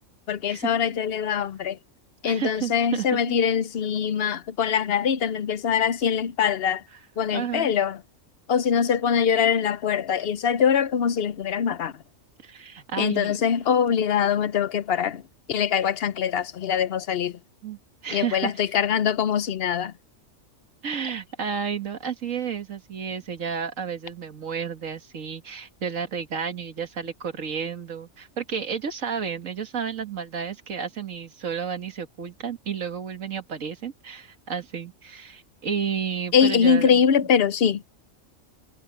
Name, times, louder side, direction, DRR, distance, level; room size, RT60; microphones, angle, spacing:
voice 1, 0.3-1.8 2.2-6.8 7.2-8.0 8.5-11.9 13.0-15.2 15.5-17.3 18.1-19.9 36.3-37.8, left 7 dB, 55° left, 0.8 m, -23 dB
voice 2, 2.2-3.4 7.3-7.7 12.4-13.4 17.6-18.7 20.8-37.0, right 7 dB, 85° right, 2.0 m, -32 dB
omnidirectional pair, 1.3 m